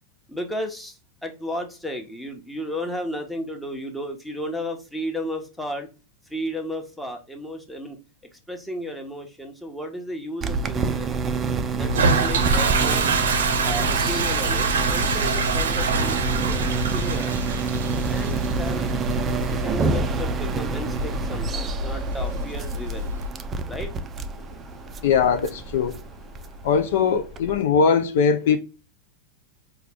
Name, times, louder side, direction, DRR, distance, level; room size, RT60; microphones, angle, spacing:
voice 1, 0.3-5.9 6.3-8.0 8.5-11.1 11.7-13.1 13.6-17.3 18.1-18.9 19.5-23.1 23.7-23.9, equal, 5° left, 0.9 m, -33 dB
sound 1, 10.4-27.6, right 4 dB, 25° right, 0.4 m, -28 dB
Toilet flush, 11.8-23.3, right 3 dB, 70° right, 0.6 m, -26 dB
voice 2, 25.0-26.0 26.6-28.6, left 6 dB, 60° left, 0.4 m, -20 dB
4.6 x 2.3 x 3.4 m
figure-of-eight pair, 90°, 0 cm